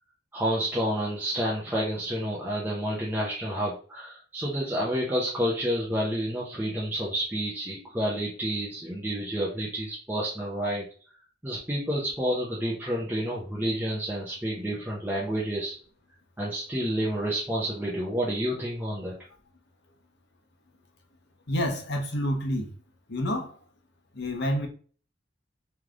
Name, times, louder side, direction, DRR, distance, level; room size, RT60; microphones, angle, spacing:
voice 1, 0.3-10.8 11.4-15.7 16.4-19.2, equal, 10° right, 0.9 m, -29 dB
voice 2, 21.5-22.7 23.1-23.6 24.1-24.7, equal, 60° left, 1.0 m, -28 dB
3.3 x 3.3 x 3.7 m
head